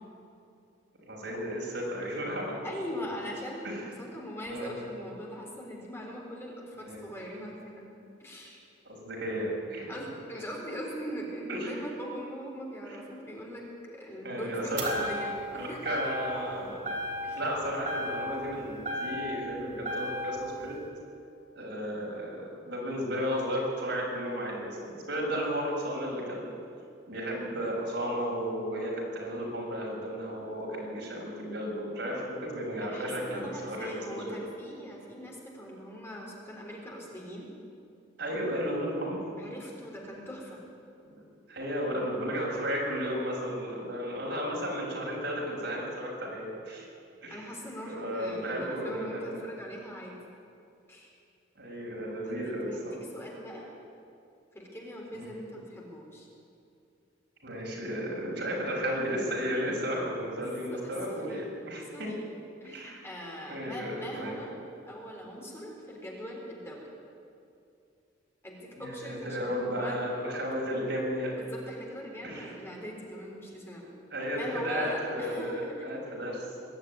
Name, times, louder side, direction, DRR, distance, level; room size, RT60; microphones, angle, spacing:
voice 1, 1.0-2.6 3.6-3.8 4.5-4.7 6.7-7.0 8.8-9.9 11.5-11.7 12.9-13.0 14.2-15.0 15.5-16.8 17.3-20.8 21.5-26.5 27.1-34.4 38.2-39.2 41.1-41.2 41.5-46.9 47.2-47.5 47.8-49.4 51.5-53.0 55.1-55.3 57.4-62.1 62.6-63.0 63.5-64.3 68.8-71.3 72.2-72.5 74.1-76.4, equal, 65° right, -2 dB, 6.6 m, -34 dB
voice 2, 2.6-7.9 8.2-8.6 9.9-13.6 13.9-16.0 17.2-17.4 32.8-37.5 39.4-40.6 47.3-50.1 50.9-51.1 52.2-53.7 54.5-56.3 60.7-61.5 61.9-62.3 62.6-64.5 64.9-66.9 68.4-70.0 71.4-73.9 74.4-76.0, equal, 15° left, -2 dB, 4.1 m, -41 dB
sound 1, 14.8-15.5 15.9-16.5 16.8-17.5 17.8-19.5 19.8-20.5, equal, 45° right, 4.0 m, -34 dB
22.0 x 12.5 x 9.7 m, 2.5 s
head